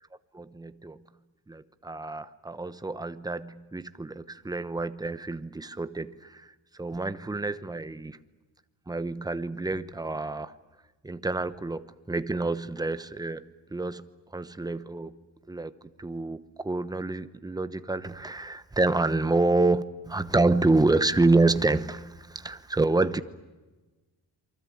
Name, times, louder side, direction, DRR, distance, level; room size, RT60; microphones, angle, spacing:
voice 1, 0.3-1.0 1.5-8.2 8.9-10.5 11.0-15.2 15.5-15.7 16.0-23.2, right 2 dB, 10° right, 0.9 m, -28 dB
28.0 x 24.5 x 8.6 m
wide cardioid pair, 165°, 43 cm